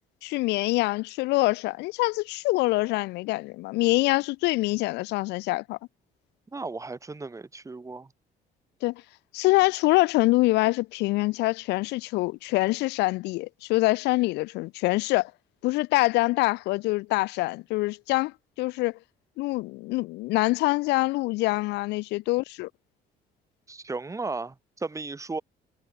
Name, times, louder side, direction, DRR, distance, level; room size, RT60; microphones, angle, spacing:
voice 1, 0.2-5.8 8.8-9.0 9.3-15.3 15.6-19.0 19.4-22.7, left 21 dB, 85° left, 0.6 m, -25 dB
voice 2, 6.5-8.1 23.7-25.4, right 3 dB, 20° right, 3.1 m, -35 dB
cardioid pair, 110°, 17 cm